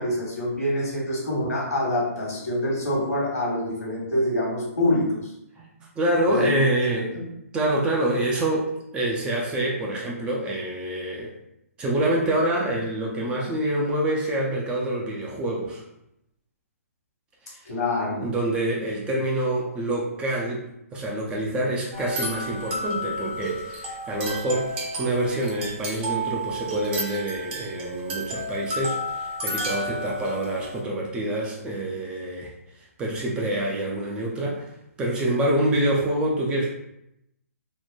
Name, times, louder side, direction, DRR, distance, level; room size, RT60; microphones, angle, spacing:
voice 1, 0.0-5.3 6.3-6.6 6.9-7.2 17.7-18.2, left 1 dB, 80° left, -3 dB, 1.1 m, -26 dB
voice 2, 5.6-7.2 7.5-11.3 11.8-15.8 17.5-17.6 18.1-32.5 33.0-34.7 35.0-36.7, right 1 dB, 10° right, -3 dB, 0.3 m, -26 dB
sound 1, 21.9-30.8, right 1 dB, 40° right, 0.8 m, -32 dB
2.9 x 2.1 x 2.2 m, 0.82 s
hypercardioid pair, 140°, 8 cm